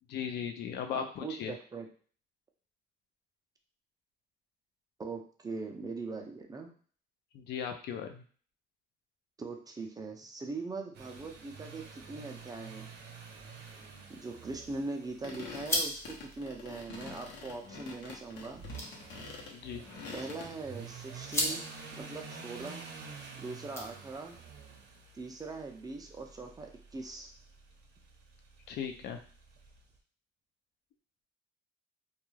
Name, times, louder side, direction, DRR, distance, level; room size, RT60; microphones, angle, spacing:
voice 1, 0.1-1.5 7.3-8.2 19.5-19.8 28.7-29.2, left 8 dB, 65° left, 4 dB, 0.4 m, -37 dB
voice 2, 0.9-1.9 5.0-6.7 9.4-12.9 14.1-18.6 20.1-21.6 22.0-22.8 23.4-24.4 25.2-27.3, right 3 dB, 20° right, 3 dB, 0.4 m, -41 dB
sound 1, 10.9-29.8, right 5 dB, 65° right, 0.7 m, -49 dB
sound 2, 14.1-24.4, left 1 dB, 15° left, 0.7 m, -41 dB
sound 3, 15.2-20.5, left 4 dB, 80° left, 0.8 m, -46 dB
2.3 x 2.2 x 3.1 m, 0.43 s
cardioid pair, 115°, 19 cm